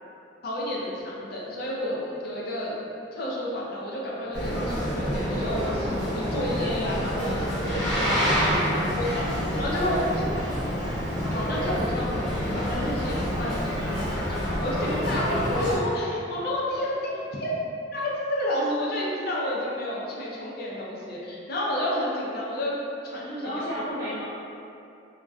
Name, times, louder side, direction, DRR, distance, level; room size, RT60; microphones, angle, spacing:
voice 1, 0.4-2.7 3.2-8.4 8.9-9.2 9.6-10.2 11.3-17.5 17.9-22.8 23.0-23.7, left 1 dB, 55° left, -5 dB, 0.5 m, -30 dB
Boat Water vehicle, 4.3-15.8, equal, 30° left, 0.8 m, -27 dB
voice 2, 8.2-9.1 23.4-24.2, equal, 55° right, -13 dB, 0.8 m, -33 dB
2.5 x 2.1 x 2.3 m, 2.6 s
head